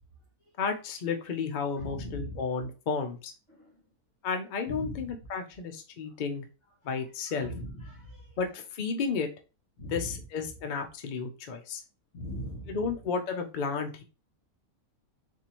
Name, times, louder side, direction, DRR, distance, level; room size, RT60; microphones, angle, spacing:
voice 1, 0.6-3.3 4.2-6.4 6.8-7.5 8.4-9.3 9.8-11.8 12.7-14.0, left 5 dB, 80° left, 5 dB, 0.4 m, -32 dB
voice 2, 1.8-2.4 4.7-5.0 7.4-8.2 9.8-10.1 12.1-12.8, equal, 45° left, -2 dB, 2.1 m, -38 dB
4.2 x 2.7 x 2.9 m, 0.32 s
omnidirectional pair, 1.6 m